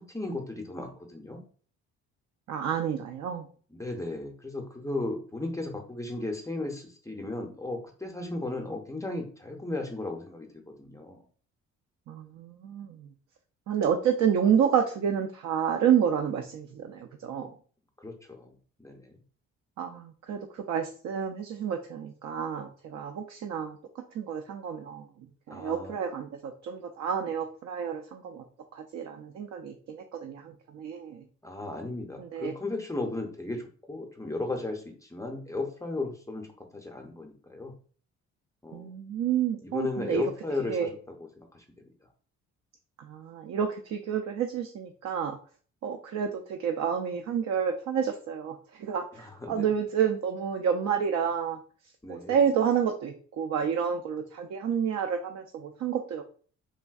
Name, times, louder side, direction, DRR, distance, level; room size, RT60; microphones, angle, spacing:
voice 1, 0.0-1.4 3.7-11.2 18.0-18.6 18.8-19.2 25.5-26.0 31.4-36.5 36.7-37.7 38.6-38.9 39.6-41.6 49.1-49.7 52.0-52.4, left 2 dB, 10° left, 2 dB, 0.5 m, -35 dB
voice 2, 2.5-3.4 12.1-13.1 13.7-17.5 19.8-23.8 24.1-25.0 25.5-28.4 28.7-31.2 32.2-32.5 38.7-40.2 40.7-40.9 43.1-45.4 45.8-51.6 52.1-56.2, right 8 dB, 65° right, 4 dB, 0.4 m, -29 dB
3.3 x 2.5 x 2.3 m, 0.42 s
cardioid pair, 90°, 30 cm